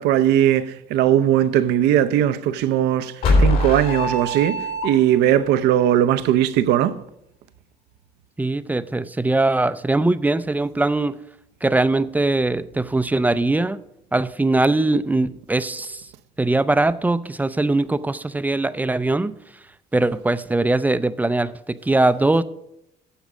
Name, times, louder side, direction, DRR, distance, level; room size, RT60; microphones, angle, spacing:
voice 1, 0.0-3.1 3.4-7.0, right 11 dB, 90° right, 0.6 m, -19 dB
sound 1, 3.2-5.3, left 1 dB, 65° left, 3.5 m, -21 dB
voice 2, 8.4-11.2 11.6-13.8 14.1-16.1 16.4-19.4 19.9-22.4, right 2 dB, 10° right, 0.4 m, -21 dB
10.0 x 7.3 x 4.9 m
cardioid pair, 110°, 17 cm